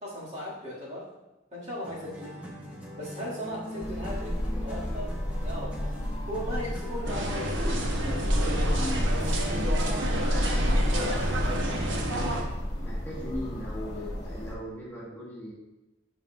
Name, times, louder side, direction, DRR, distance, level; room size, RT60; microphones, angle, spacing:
voice 1, 0.0-1.1 1.5-2.4 2.9-4.3 4.6-5.1 5.4-6.0 6.3-8.1 10.9-11.2, equal, 35° right, -8 dB, 2.2 m, -37 dB
sound 1, 1.8-7.2, equal, 5° right, 0.8 m, -41 dB
sound 2, 3.8-14.5, equal, 40° left, 1.4 m, -30 dB
sound 3, 7.1-12.4, right 1 dB, 80° right, 0.9 m, -31 dB
voice 2, 7.6-9.3 12.7-15.5, equal, 10° left, -8 dB, 1.5 m, -38 dB
9.1 x 5.3 x 2.5 m, 1.0 s
head